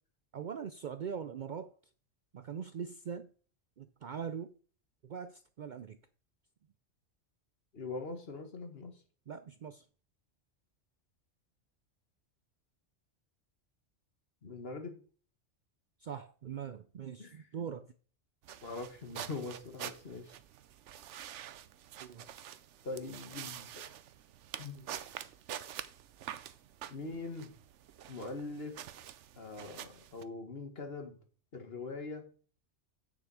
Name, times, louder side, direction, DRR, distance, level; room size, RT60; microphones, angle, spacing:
voice 1, 0.3-1.7 2.3-3.3 3.8-4.5 5.0-6.0 9.3-9.8 16.0-17.9 22.0-22.3, right 7 dB, 60° right, 0.5 m, -42 dB
voice 2, 7.7-9.0 14.4-15.0 17.2-17.4 18.6-20.4 22.8-23.8 24.6-24.9 26.9-27.5 28.1-28.8 29.4-31.2 31.5-32.2, left 3 dB, 55° left, 1.8 m, -42 dB
sound 1, 18.4-30.2, right 10 dB, 80° right, 1.0 m, -47 dB
8.7 x 6.8 x 4.8 m
omnidirectional pair, 1.2 m